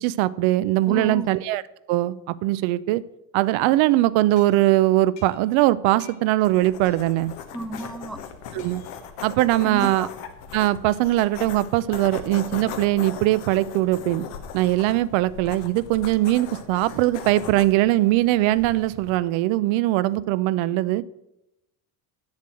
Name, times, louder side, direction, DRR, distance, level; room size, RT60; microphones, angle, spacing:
voice 1, 0.0-1.6 1.9-3.0 3.3-7.3 8.5-8.8 9.2-10.1 10.5-14.2 14.5-21.0, right 16 dB, 70° right, 0.6 m, -21 dB
voice 2, 0.9-1.3 7.5-8.2 9.6-10.1, right 1 dB, ahead, 0.3 m, -32 dB
sound 1, 4.4-5.7 6.0-6.4 6.9-7.3 7.8-8.0 8.6-9.1, left 8 dB, 70° left, 1.5 m, -53 dB
sound 2, 6.4-19.2, left 7 dB, 90° left, 1.3 m, -39 dB
7.5 x 7.4 x 7.6 m
supercardioid pair, 95°, 48 cm